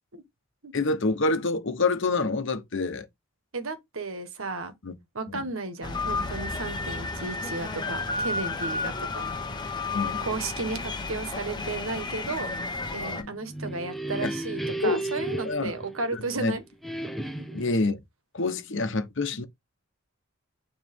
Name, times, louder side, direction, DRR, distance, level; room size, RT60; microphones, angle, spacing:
voice 1, 0.7-3.1 4.8-4.9 5.3-5.4 9.9-10.2 13.1-13.3 14.2-14.3 14.8-15.0 15.3-15.7 16.1-16.6 17.5-18.0 18.3-19.4, left 3 dB, 60° left, 1.1 m, -27 dB
voice 2, 3.5-4.7 5.1-9.3 10.2-12.5 12.9-16.6, right 3 dB, 75° right, 1.5 m, -34 dB
sound 1, 5.8-13.2, left 3 dB, 20° left, 1.1 m, -32 dB
sound 2, 13.3-16.4 16.8-17.8, right 2 dB, ahead, 0.8 m, -34 dB
9.4 x 3.3 x 3.6 m
head